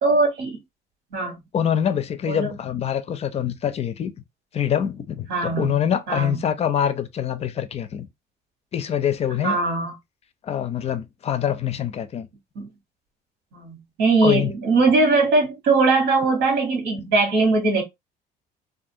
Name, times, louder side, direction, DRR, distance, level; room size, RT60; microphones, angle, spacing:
voice 1, 0.0-0.6 1.1-1.3 2.3-2.5 5.3-5.7 6.1-6.4 9.4-9.9 12.5-12.7 13.5-17.8, right 3 dB, 85° right, 1.3 m, -20 dB
voice 2, 1.5-4.1 4.5-8.1 8.7-9.6 10.4-12.3 14.2-14.5, left 9 dB, 40° left, 0.4 m, -25 dB
2.5 x 2.4 x 2.6 m
cardioid pair, 110°, 17 cm